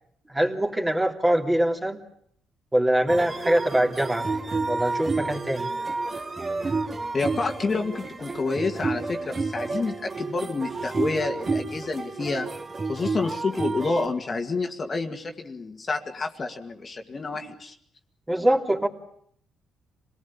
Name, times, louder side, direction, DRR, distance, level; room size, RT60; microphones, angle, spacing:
voice 1, 0.3-2.0 2.7-4.3 4.7-5.7 18.3-18.9, right 1 dB, 15° right, 2 dB, 3.1 m, -23 dB
sound 1, 3.1-14.1, right 3 dB, 35° right, 2.4 m, -30 dB
voice 2, 7.1-12.5 12.9-17.8, left 3 dB, 35° left, 4 dB, 2.1 m, -29 dB
26.0 x 18.5 x 8.6 m, 0.67 s
cardioid pair, 90°, 0 cm